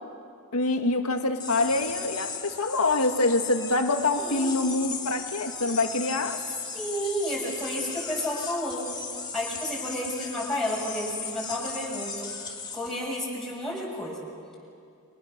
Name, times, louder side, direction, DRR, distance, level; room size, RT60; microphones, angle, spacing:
voice 1, 0.5-6.4, left 2 dB, 80° left, 5 dB, 1.8 m, -25 dB
sound 1, 1.4-12.9, left 5 dB, 20° left, 2.6 m, -37 dB
voice 2, 4.2-4.6 6.7-8.8 9.3-14.2, equal, ahead, -5 dB, 7.3 m, -31 dB
29.5 x 25.0 x 6.7 m, 2.4 s
head